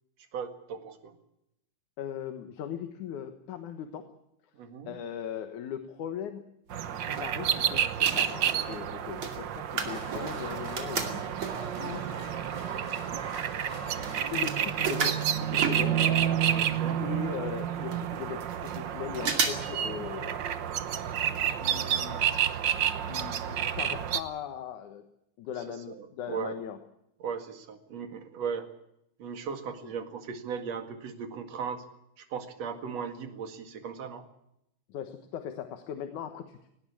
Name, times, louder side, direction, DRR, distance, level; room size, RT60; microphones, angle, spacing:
voice 1, 0.3-1.1 4.6-4.9 16.5-17.0 25.9-26.5 27.2-28.7 29.2-31.8 32.2-34.2, right 6 dB, 60° right, 7 dB, 3.0 m, -37 dB
voice 2, 2.0-4.1 4.9-6.4 6.9-11.3 11.8-12.3 14.3-16.0 17.0-20.5 21.5-22.4 23.0-25.0 25.4-26.8 29.8-29.9 34.9-36.7, left 8 dB, 75° left, 8 dB, 2.7 m, -39 dB
sound 1, 6.7-7.6 7.9-11.8 12.4-12.5 12.7-16.3 16.6-16.7 16.9-17.0 17.6-17.7 17.9-18.8 19.1-19.8 20.1-20.2 21.1-21.4 21.7-21.8 22.3-22.4 22.8-22.9, right 5 dB, 45° right, 3.1 m, -34 dB
sound 2, 6.7-24.2, right 9 dB, 85° right, 1.0 m, -30 dB
sound 3, 9.8-15.1, right 2 dB, 25° right, 3.3 m, -43 dB
19.5 x 18.0 x 8.6 m, 0.81 s
omnidirectional pair, 3.5 m